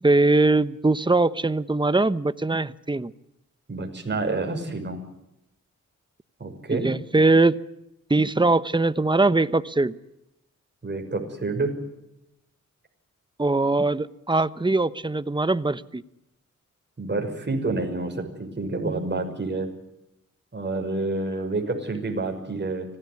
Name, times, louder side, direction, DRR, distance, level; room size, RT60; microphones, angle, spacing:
voice 1, 0.0-3.1 6.7-7.6 8.1-9.9 13.4-16.0, right 2 dB, 15° right, 14 dB, 1.1 m, -21 dB
voice 2, 3.7-5.0 6.4-6.8 10.8-11.7 17.0-19.7 20.5-22.8, right 3 dB, 35° right, 3 dB, 6.2 m, -28 dB
25.5 x 17.0 x 9.7 m, 0.86 s
cardioid pair, 70°, 31 cm